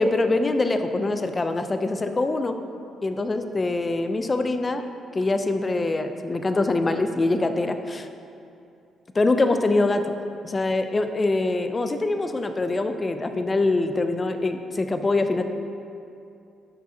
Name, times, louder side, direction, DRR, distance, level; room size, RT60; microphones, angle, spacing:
voice 1, 0.0-2.6 3.0-4.8 5.1-8.1 9.1-10.1 10.4-15.4, left 2 dB, 25° left, 8 dB, 0.5 m, -24 dB
9.9 x 6.1 x 2.8 m, 2.6 s
cardioid pair, 90°, 0 cm